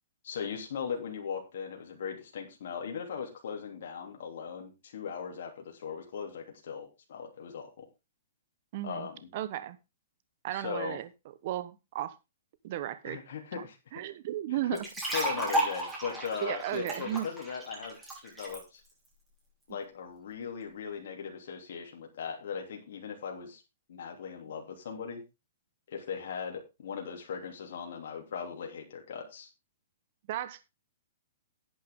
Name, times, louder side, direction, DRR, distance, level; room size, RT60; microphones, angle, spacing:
voice 1, 0.2-7.8 8.8-9.2 10.5-11.0 13.0-13.8 14.5-14.6 15.1-18.0 18.2-18.8 19.7-23.6 23.9-25.2 25.9-29.5, left 6 dB, 65° left, 1 dB, 3.1 m, -39 dB
voice 2, 8.7-9.8 10.4-11.1 11.4-12.1 12.6-13.2 13.5-13.6 13.9-14.8 15.4-15.7 16.4-17.3 30.3-30.7, right 13 dB, 45° right, 13 dB, 1.1 m, -35 dB
sound 1, 14.7-18.6, right 1 dB, 5° right, 6.1 m, -33 dB
11.0 x 9.3 x 3.8 m, 0.26 s
hypercardioid pair, 150°, 0 cm